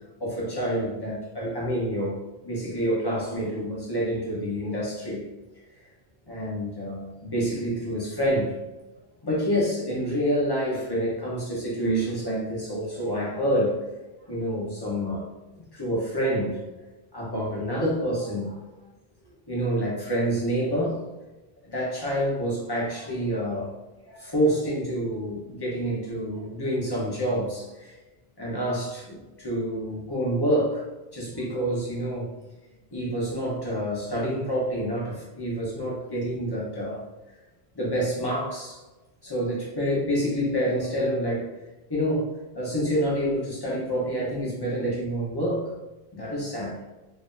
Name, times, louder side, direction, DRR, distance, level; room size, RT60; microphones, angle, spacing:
voice 1, 0.2-5.2 6.3-8.6 9.2-13.8 14.3-15.3 15.7-16.6 17.1-18.6 19.5-21.0 21.6-23.7 24.1-27.9 28.4-30.9 31.1-32.3 32.9-37.0 37.7-38.8 39.2-41.6 41.9-42.3 42.5-45.7 46.1-46.8, equal, 25° left, -5 dB, 1.0 m, -27 dB
4.0 x 2.7 x 2.6 m, 1.1 s
omnidirectional pair, 1.1 m